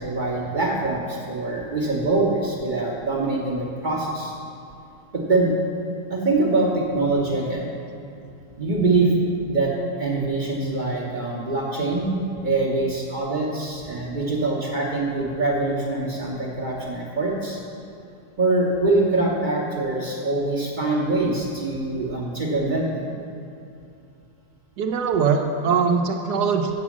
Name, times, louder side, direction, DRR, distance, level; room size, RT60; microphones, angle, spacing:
voice 1, 0.0-4.3 5.1-5.5 6.1-7.7 8.6-9.2 9.5-17.6 18.4-23.1, right 2 dB, 35° right, -2 dB, 0.8 m, -24 dB
voice 2, 24.8-26.7, right 5 dB, 65° right, 4 dB, 1.1 m, -21 dB
8.0 x 6.1 x 7.2 m, 2.6 s
omnidirectional pair, 2.1 m